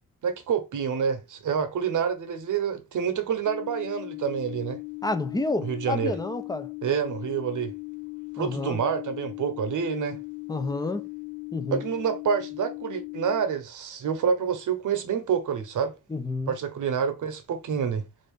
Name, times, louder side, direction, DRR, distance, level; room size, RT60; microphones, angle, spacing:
voice 1, 0.2-4.8 5.6-6.1 6.8-7.7 8.4-10.2 11.7-15.9 16.5-18.1, right 7 dB, 65° right, 0.9 m, -27 dB
sound 1, 3.4-13.4, left 24 dB, 80° left, 0.8 m, -38 dB
voice 2, 5.0-6.7 8.4-8.8 10.5-11.1 11.5-11.8 16.1-16.6, left 2 dB, 10° left, 0.5 m, -30 dB
3.8 x 2.6 x 3.6 m
cardioid pair, 115°, 32 cm